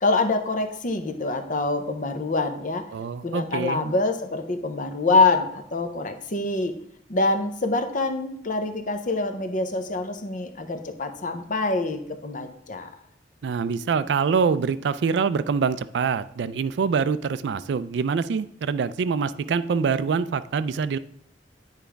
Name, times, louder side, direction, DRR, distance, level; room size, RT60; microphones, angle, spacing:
voice 1, 0.0-2.8 3.2-6.8 7.1-12.9, left 3 dB, 45° left, 7 dB, 0.7 m, -25 dB
voice 2, 2.9-3.9 13.4-21.0, right 5 dB, 70° right, 15 dB, 0.3 m, -25 dB
9.2 x 4.9 x 3.4 m, 0.73 s
head